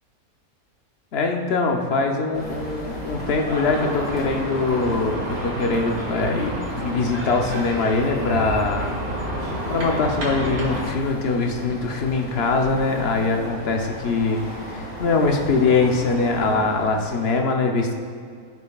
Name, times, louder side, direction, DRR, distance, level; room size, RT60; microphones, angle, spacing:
voice 1, 1.1-8.9 9.7-14.4 14.7-17.9, left 3 dB, 50° left, 2 dB, 1.0 m, -22 dB
sound 1, 2.3-17.3, equal, 5° left, 1.8 m, -35 dB
sound 2, 3.6-10.9, right 1 dB, 85° right, 2.6 m, -30 dB
13.5 x 5.5 x 2.4 m, 2.2 s
omnidirectional pair, 1.5 m